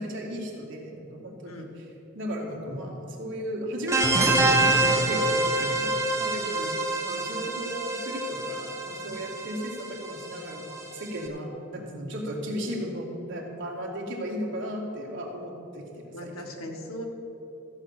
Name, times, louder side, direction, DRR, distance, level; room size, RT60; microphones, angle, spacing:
voice 1, 0.0-1.7 2.1-6.6 7.0-16.7, equal, 60° right, -1 dB, 2.2 m, -35 dB
voice 2, 1.4-1.7 6.5-6.7 9.4-9.5 16.1-17.0, equal, 85° left, 2 dB, 1.6 m, -39 dB
sound 1, 3.9-11.2, right 2 dB, 15° right, 1.2 m, -26 dB
14.0 x 5.5 x 8.1 m, 2.9 s
head